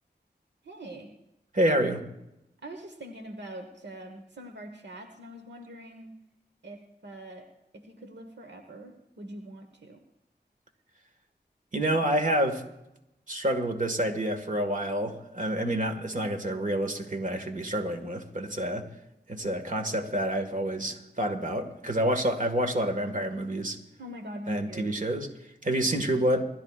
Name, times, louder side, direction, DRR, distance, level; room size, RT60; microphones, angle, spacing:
voice 1, 0.6-1.1 2.6-6.1 6.6-7.5 7.7-10.0 24.0-24.9, right 1 dB, 80° right, 4 dB, 1.3 m, -43 dB
voice 2, 1.5-2.0 11.7-12.6 13.3-18.9 19.3-23.8 24.5-25.3 25.6-26.4, right 1 dB, 45° right, 5 dB, 1.7 m, -28 dB
27.0 x 12.5 x 2.4 m, 0.88 s
wide cardioid pair, 55°, 18 cm